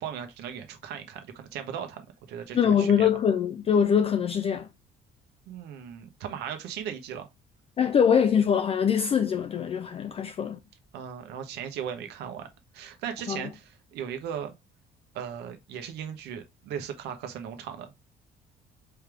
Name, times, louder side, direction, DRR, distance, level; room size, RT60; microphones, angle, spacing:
voice 1, 0.0-3.1 5.5-7.3 10.9-12.5 12.7-14.5 15.1-17.9, right 8 dB, 80° right, 1.1 m, -37 dB
voice 2, 2.5-4.7 7.8-10.6 13.3-13.4, left 7 dB, 35° left, 0.4 m, -23 dB
4.5 x 3.4 x 3.4 m
cardioid pair, 110°, 17 cm